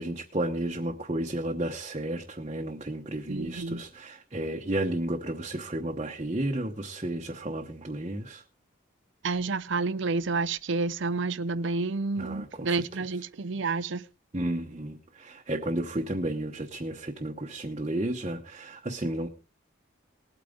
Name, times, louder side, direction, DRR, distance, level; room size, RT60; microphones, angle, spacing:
voice 1, 0.0-8.4 12.2-12.8 14.3-19.3, right 1 dB, 30° right, 0.9 m, -32 dB
voice 2, 3.3-3.8 9.2-14.0, right 3 dB, 65° right, 0.5 m, -29 dB
20.0 x 8.7 x 3.8 m
head